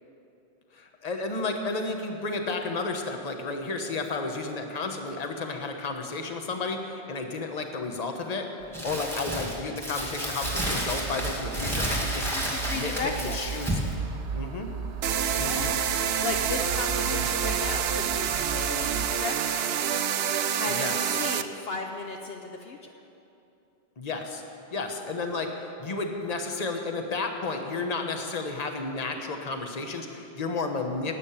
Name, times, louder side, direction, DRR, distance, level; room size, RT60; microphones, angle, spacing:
voice 1, 0.7-12.9 13.2-13.8 14.3-14.7 15.4-15.7 17.0-17.3 20.7-21.0 24.0-24.4 24.7-31.2, left 3 dB, 35° left, 4 dB, 1.1 m, -32 dB
Crumpling crinkling, 8.7-13.9, equal, ahead, 2.3 m, -31 dB
sound 1, 10.4-19.1, right 5 dB, 90° right, 1.2 m, -36 dB
voice 2, 12.3-13.4 15.3-15.7 16.2-19.7 20.5-22.9, left 4 dB, 65° left, 3 dB, 1.0 m, -35 dB
sound 2, 15.0-21.4, right 8 dB, 70° right, 0.8 m, -27 dB
12.5 x 8.6 x 8.9 m, 2.9 s
omnidirectional pair, 1.1 m